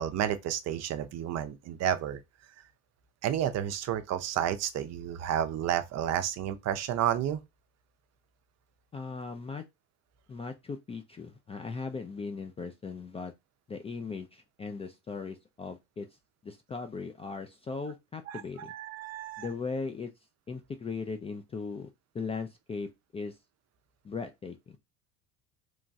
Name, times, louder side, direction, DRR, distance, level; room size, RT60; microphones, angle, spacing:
voice 1, 0.0-2.2 3.2-7.4 18.3-19.5, right 10 dB, 45° right, 0.5 m, -31 dB
voice 2, 8.9-9.6 10.3-13.3 13.7-16.1 16.4-18.7 19.4-20.1 20.5-23.4 24.0-24.8, left 4 dB, 15° left, 0.3 m, -38 dB
3.1 x 2.2 x 2.6 m
hypercardioid pair, 70°, 38 cm